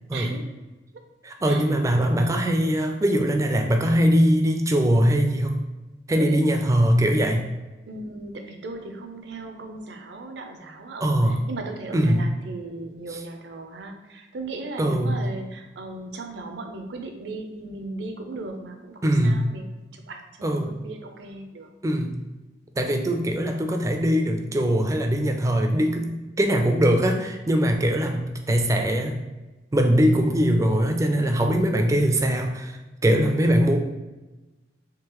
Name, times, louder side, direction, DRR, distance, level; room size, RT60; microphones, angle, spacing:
voice 1, 0.1-0.5 1.4-1.7 6.2-6.4 7.9-21.7, right 2 dB, 70° right, 4 dB, 0.5 m, -37 dB
voice 2, 1.2-5.6 6.1-7.5 11.0-11.5 11.9-12.3 14.8-15.3 19.0-19.4 20.4-20.8 21.8-22.2 22.8-29.2 29.7-32.8 33.0-33.8, equal, 15° right, 4 dB, 0.3 m, -21 dB
3.7 x 3.2 x 2.9 m, 1.1 s
head